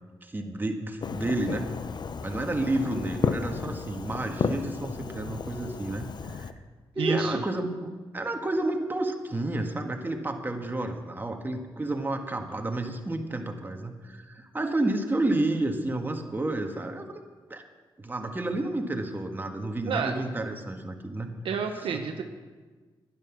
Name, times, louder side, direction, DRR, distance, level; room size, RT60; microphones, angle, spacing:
voice 1, 0.2-1.8 2.2-6.5 6.9-7.9 8.1-17.2 17.5-17.6 18.0-21.3 21.9-22.0, right 2 dB, 20° right, 4 dB, 1.6 m, -30 dB
Fireworks, 1.0-6.5, left 5 dB, 55° left, 0.7 m, -33 dB
voice 2, 7.0-7.3 19.9-20.1 21.4-22.2, right 6 dB, 80° right, 5 dB, 0.9 m, -29 dB
11.0 x 11.0 x 6.0 m, 1.4 s
cardioid pair, 65°, 9 cm